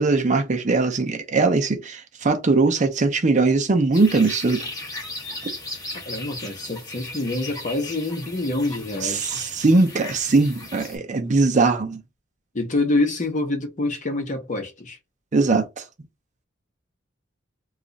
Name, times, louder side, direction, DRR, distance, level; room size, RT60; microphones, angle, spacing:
voice 1, 0.0-4.7 9.0-12.0 15.3-15.8, right 3 dB, 40° right, 0.5 m, -20 dB
sound 1, 3.9-11.0, left 2 dB, 20° left, 1.2 m, -36 dB
voice 2, 6.1-9.4 12.5-15.0, left 2 dB, 40° left, 0.9 m, -26 dB
3.0 x 2.4 x 3.9 m
head